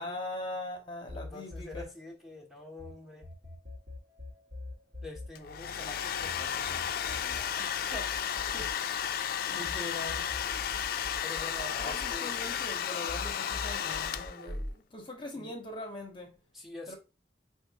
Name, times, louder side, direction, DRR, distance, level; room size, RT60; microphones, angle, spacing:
voice 1, 0.0-1.9 8.5-8.8 9.2-10.3 11.7-16.3 16.9-17.0, left 2 dB, 30° left, 0.8 m, -41 dB
voice 2, 1.1-3.3 5.0-8.1 11.2-12.4 15.3-15.5 16.5-17.0, left 1 dB, ahead, 0.8 m, -46 dB
sound 1, 1.1-2.9 3.2-9.8 10.1-12.8 13.1-14.7, left 1 dB, 60° right, 1.2 m, -43 dB
Domestic sounds home sounds, 5.3-14.6, left 9 dB, 55° left, 0.3 m, -33 dB
5.0 x 2.5 x 2.8 m
head